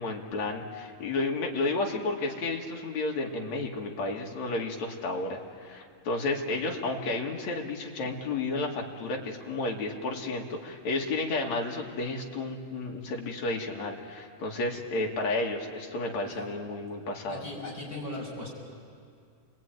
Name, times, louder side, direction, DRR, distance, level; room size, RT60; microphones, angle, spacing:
voice 1, 0.0-17.5, left 2 dB, 60° left, 1 dB, 3.4 m, -32 dB
voice 2, 17.3-18.5, left 2 dB, 30° left, -3 dB, 7.2 m, -38 dB
28.5 x 22.0 x 9.3 m, 2.2 s
omnidirectional pair, 3.6 m